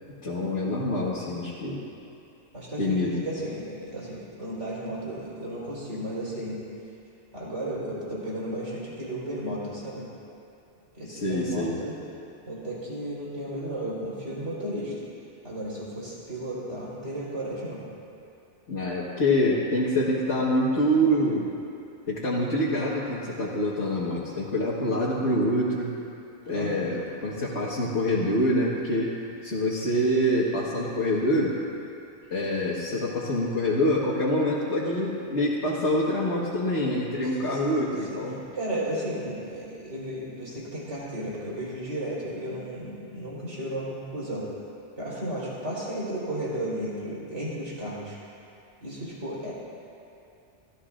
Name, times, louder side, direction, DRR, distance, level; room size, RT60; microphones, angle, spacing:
voice 1, 0.2-1.8 2.8-3.2 11.1-11.8 18.7-21.5 22.1-25.9 26.5-29.1 29.4-31.6 32.3-38.4, equal, 75° left, -7 dB, 1.8 m, -26 dB
voice 2, 2.5-6.6 7.3-10.1 10.9-11.9 12.5-14.9 15.4-17.8 26.5-26.9 37.5-38.2 38.5-44.5 45.0-48.2 48.8-49.5, right 1 dB, 85° right, -7 dB, 4.6 m, -34 dB
29.0 x 14.0 x 2.5 m, 2.7 s
omnidirectional pair, 1.2 m